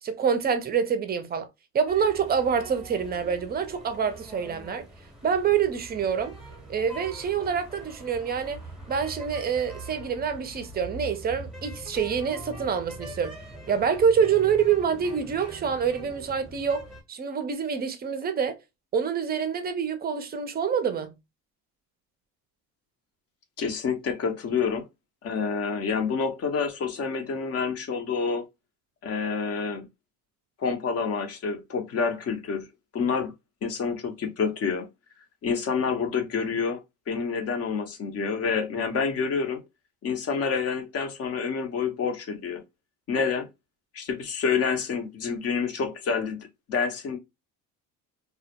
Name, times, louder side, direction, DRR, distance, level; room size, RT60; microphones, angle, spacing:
voice 1, 0.0-1.5 1.7-4.9 5.2-6.3 6.7-8.6 8.9-13.4 13.7-18.6 18.9-21.1, right 7 dB, 25° right, 0.5 m, -26 dB
sound 1, 1.9-17.0, right 2 dB, ahead, 0.8 m, -43 dB
voice 2, 23.6-24.9 25.2-28.4 29.0-29.9 30.6-32.7 32.9-33.3 33.6-34.9 35.4-36.8 37.1-39.6 40.0-42.6 43.1-43.5 43.9-47.2, left 5 dB, 40° left, 0.6 m, -28 dB
2.1 x 2.1 x 2.7 m
supercardioid pair, 100°, 38 cm